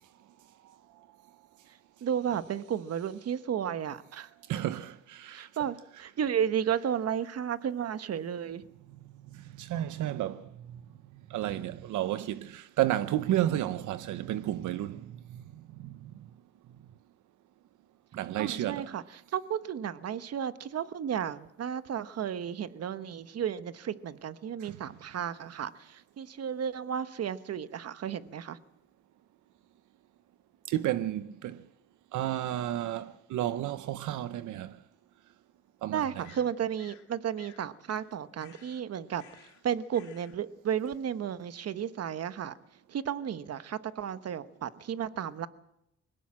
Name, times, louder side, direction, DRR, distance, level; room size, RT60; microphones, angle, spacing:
voice 1, 2.0-4.3 5.3-8.6 18.4-19.0 19.3-28.6 35.9-42.5 42.9-45.5, right 8 dB, 55° right, 1.1 m, -33 dB
voice 2, 4.5-5.5 9.3-10.8 11.3-15.4 15.8-16.1 18.1-19.0 24.6-24.8 30.7-31.6 32.1-34.8 35.8-36.3, right 13 dB, 80° right, 0.8 m, -32 dB
sound 1, 36.2-37.1 37.4-37.7 38.4-38.8 39.2-39.6 39.9-40.4, left 10 dB, 70° left, 2.4 m, -56 dB
21.5 x 17.5 x 7.6 m
cardioid pair, 90°, 30 cm